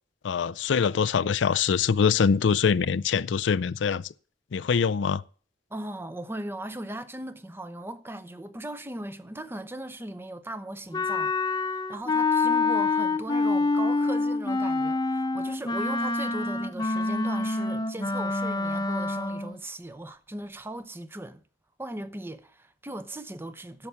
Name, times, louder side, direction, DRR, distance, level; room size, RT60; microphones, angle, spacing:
voice 1, 0.2-4.1 4.5-5.2, left 6 dB, 85° left, 0.4 m, -24 dB
voice 2, 5.7-21.4 21.8-23.9, right 1 dB, 15° right, 0.7 m, -38 dB
Wind instrument woodwind instrument, 10.9-19.6, left 3 dB, 25° left, 0.7 m, -26 dB
10.5 x 7.1 x 6.9 m
head